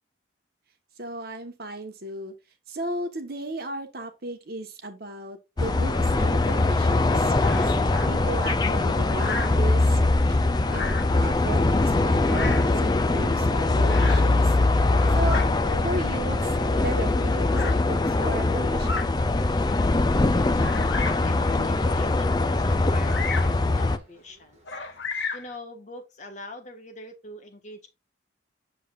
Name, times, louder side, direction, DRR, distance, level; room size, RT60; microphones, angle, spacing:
voice 1, 1.0-2.3 2.7-7.7 8.1-10.1 10.7-10.9 11.2-12.9 13.1-14.5 15.1-16.5 16.8-19.1, right 1 dB, 50° right, 1.2 m, -35 dB
sound 1, 5.6-24.0, left 2 dB, 20° left, 0.4 m, -22 dB
Bird vocalization bird call bird song, 7.4-8.1 9.1-9.6 10.6-11.2 12.2-12.7 13.9-14.3 14.8-15.5 16.4-16.5 17.5-17.8 18.7-19.1 19.7-19.8 20.6-21.3 23.0-23.6 24.7-25.5, left 4 dB, 65° left, 1.0 m, -33 dB
sound 2, 19.7-25.0, left 2 dB, 35° right, 1.7 m, -46 dB
voice 2, 20.4-20.8 21.2-24.6 25.3-28.0, left 2 dB, 40° left, 1.4 m, -42 dB
7.4 x 6.9 x 2.5 m
head